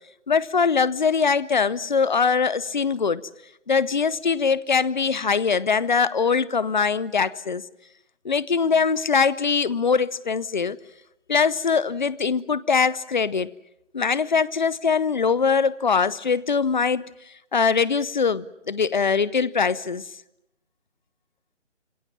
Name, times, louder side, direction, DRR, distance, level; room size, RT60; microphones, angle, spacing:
voice 1, 0.3-3.2 3.7-7.6 8.2-10.8 11.3-13.5 13.9-17.1 17.5-20.0, left 5 dB, 40° left, 0.8 m, -22 dB
26.5 x 21.5 x 7.5 m
figure-of-eight pair, 150°, 35 cm